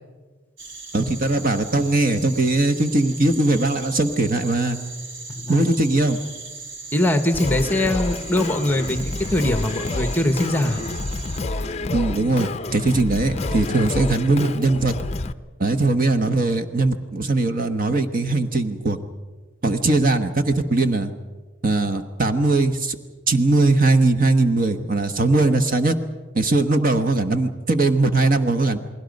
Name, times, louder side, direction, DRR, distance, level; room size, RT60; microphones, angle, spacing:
sound 1, 0.6-11.4, right 4 dB, 65° right, 2.5 m, -38 dB
voice 1, 0.9-4.8 5.5-6.2 11.9-14.9 15.6-19.0 19.6-21.1 21.6-23.0 23.3-25.9 26.3-28.8, right 2 dB, 40° right, 8 dB, 1.1 m, -20 dB
voice 2, 5.3-5.7 6.9-10.8, left 1 dB, 10° left, 9 dB, 1.1 m, -22 dB
Singing, 7.3-15.3, left 2 dB, 30° left, 0.6 m, -28 dB
29.0 x 20.0 x 5.3 m, 1.3 s
head